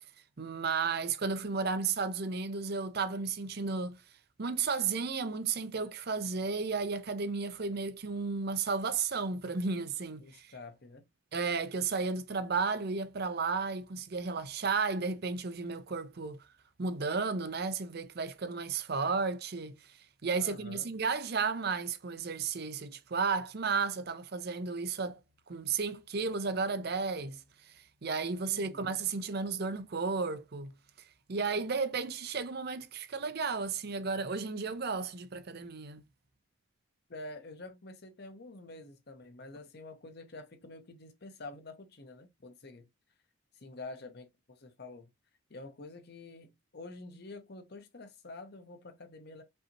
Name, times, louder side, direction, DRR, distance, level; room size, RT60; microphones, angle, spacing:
voice 1, 0.4-4.0 4.4-10.5 11.3-16.4 16.8-19.8 20.2-25.2 25.5-27.4 27.7-30.7 31.3-36.0, right 4 dB, 50° right, 0.5 m, -33 dB
voice 2, 10.2-11.1 20.3-20.9 28.4-29.0 37.1-42.9 43.6-45.1 45.5-49.4, left 2 dB, 50° left, 0.8 m, -48 dB
5.4 x 2.8 x 2.7 m
head